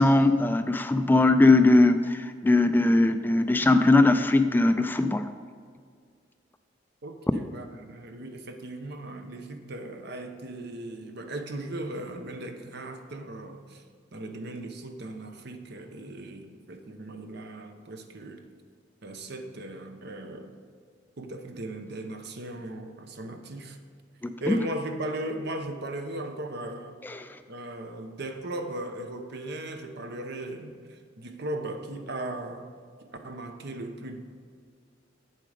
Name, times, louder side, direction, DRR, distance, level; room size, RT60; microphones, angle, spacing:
voice 1, 0.0-5.3 24.2-24.6 27.0-27.3, left 2 dB, 10° left, 9 dB, 0.3 m, -20 dB
voice 2, 7.0-13.8 14.1-18.4 19.0-20.6 21.2-23.8 24.4-27.0 27.5-32.7 33.0-34.2, right 1 dB, 60° right, 6 dB, 0.9 m, -37 dB
8.5 x 7.6 x 4.9 m, 2.1 s
head